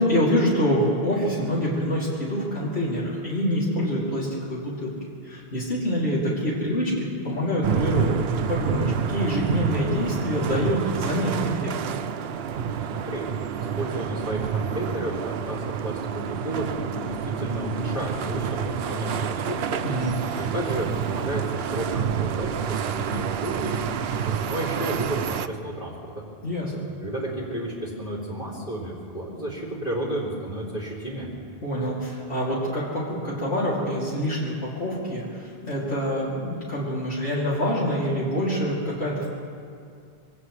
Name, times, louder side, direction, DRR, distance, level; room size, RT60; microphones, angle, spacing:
voice 1, 0.0-5.0 5.2-8.2 8.5-11.7 19.8-20.2 26.4-26.7 31.6-39.3, equal, 85° left, -7 dB, 3.3 m, -26 dB
sound 1, 7.6-25.5, right 7 dB, 75° right, 0.8 m, -28 dB
voice 2, 12.9-19.8 20.4-26.2 27.0-31.3, right 1 dB, 55° left, -7 dB, 3.0 m, -32 dB
23.0 x 18.5 x 3.3 m, 2.3 s
omnidirectional pair, 1.1 m